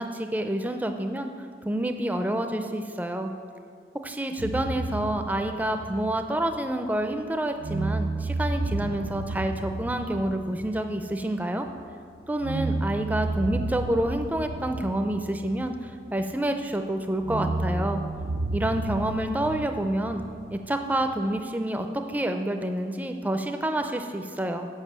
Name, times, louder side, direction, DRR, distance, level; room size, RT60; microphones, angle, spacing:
voice 1, 0.0-1.3 1.6-3.3 4.0-11.7 12.3-18.0 18.5-20.2 20.5-24.7, right 1 dB, 10° right, 6 dB, 0.4 m, -28 dB
sound 1, 4.4-7.2 7.6-11.8 12.4-16.5 17.2-21.2, right 2 dB, 90° right, 0.5 m, -32 dB
7.4 x 5.5 x 6.8 m, 2.2 s
head